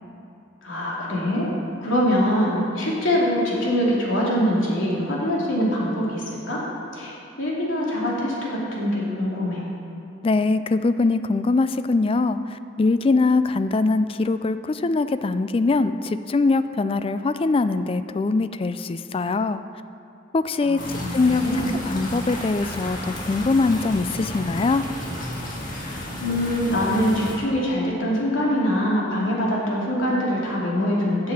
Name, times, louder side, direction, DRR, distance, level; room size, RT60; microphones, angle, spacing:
voice 1, 0.6-1.5 1.8-6.6 6.9-9.6 20.6-21.7 25.7-31.3, equal, 85° left, -5 dB, 2.8 m, -24 dB
voice 2, 10.2-19.6 20.3-24.8, left 3 dB, 30° left, 12 dB, 0.3 m, -22 dB
sound 1, 20.8-27.4, left 1 dB, 45° left, 1.9 m, -33 dB
8.7 x 7.6 x 7.3 m, 2.5 s
head